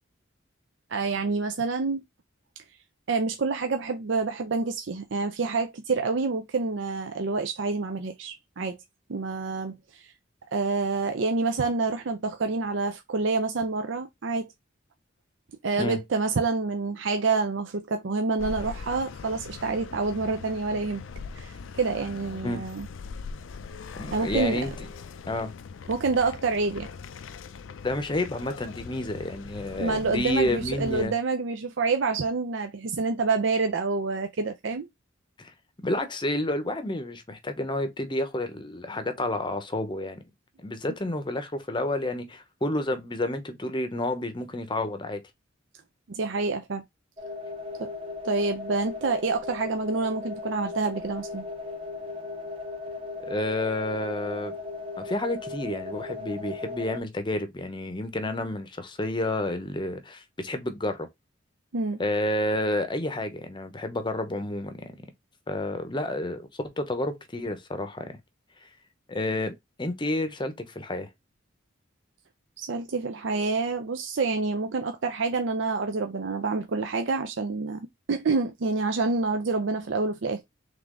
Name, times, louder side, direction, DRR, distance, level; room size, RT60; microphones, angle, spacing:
voice 1, 0.9-2.0 3.1-8.8 9.1-10.1 10.5-14.5 15.6-21.0 21.3-22.9 24.1-24.6 25.9-26.9 29.8-34.9 46.1-46.8 47.8-47.9 48.2-51.4 61.7-62.0 72.6-80.4, right 4 dB, 70° right, 0.5 m, -27 dB
sound 1, 18.4-31.1, left 5 dB, 80° left, 0.4 m, -41 dB
voice 2, 23.9-24.7 25.3-25.5 27.8-31.1 35.4-35.5 35.8-40.2 40.6-45.2 53.2-54.5 55.0-61.1 62.0-64.9 65.5-68.1 69.1-69.5 69.8-71.1, left 1 dB, 25° left, 0.7 m, -30 dB
sound 2, 47.2-57.0, left 3 dB, 30° right, 1.0 m, -37 dB
3.7 x 3.4 x 3.7 m
head